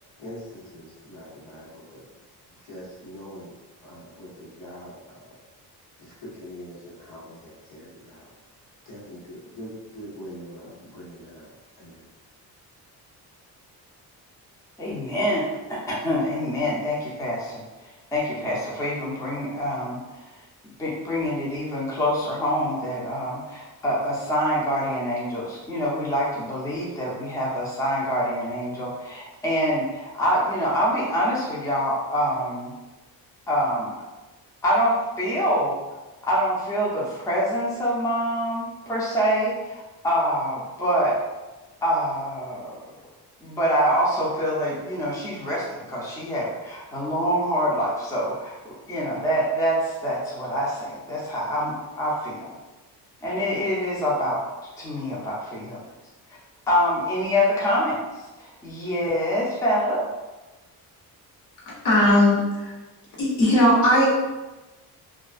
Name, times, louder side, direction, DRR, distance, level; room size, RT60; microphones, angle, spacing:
voice 1, 0.2-2.0 2.5-3.5 3.8-5.3 6.0-8.2 8.8-12.1, equal, 80° left, -7 dB, 1.1 m, -43 dB
voice 2, 14.8-17.6 18.1-20.3 20.8-32.7 33.5-34.0 34.6-35.8 36.3-41.2 41.8-42.8 43.4-48.6 48.9-52.5 53.2-54.4 54.8-55.8 56.7-58.0 58.4-60.0, equal, 10° left, -6 dB, 0.5 m, -25 dB
voice 3, 61.8-62.7 63.2-64.1, left 1 dB, 55° left, -5 dB, 1.1 m, -18 dB
2.3 x 2.2 x 2.4 m, 1.1 s
cardioid pair, 115°, 38 cm